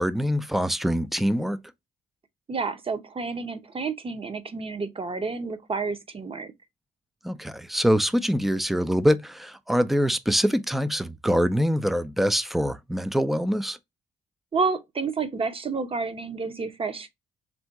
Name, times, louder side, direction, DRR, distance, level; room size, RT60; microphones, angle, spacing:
voice 1, 0.0-1.6 7.2-13.8, equal, ahead, 0.4 m, -24 dB
voice 2, 2.5-6.5 14.5-17.1, right 4 dB, 30° right, 0.8 m, -30 dB
3.5 x 2.7 x 4.5 m
cardioid pair, 90°, 20 cm